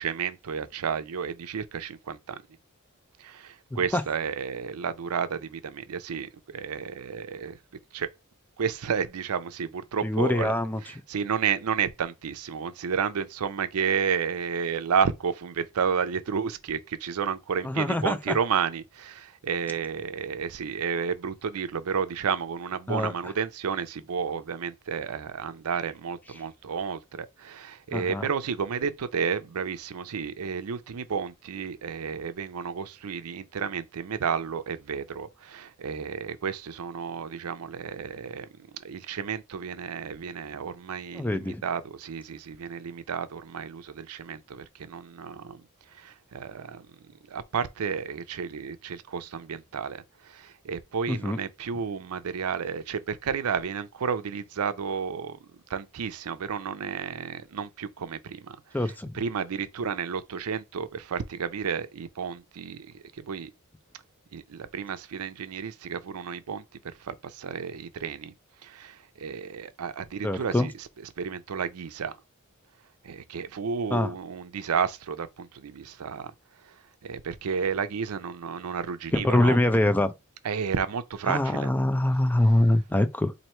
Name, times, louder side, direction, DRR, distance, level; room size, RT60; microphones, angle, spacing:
voice 1, 0.0-2.4 3.2-7.6 7.9-8.1 8.6-10.5 11.1-38.5 38.8-45.6 46.0-46.9 47.3-55.4 55.7-58.6 59.1-63.5 64.3-66.6 67.0-68.3 68.6-70.7 71.2-72.1 73.0-76.3 77.0-79.6 80.4-81.7, right 6 dB, 85° right, 0.5 m, -31 dB
voice 2, 3.7-4.0 10.0-10.8 17.6-18.4 22.9-23.1 27.9-28.3 41.1-41.6 51.1-51.4 58.7-59.2 70.2-70.7 73.9-74.1 79.1-80.1 81.3-83.3, left 1 dB, 10° left, 0.3 m, -24 dB
3.0 x 2.7 x 4.3 m
head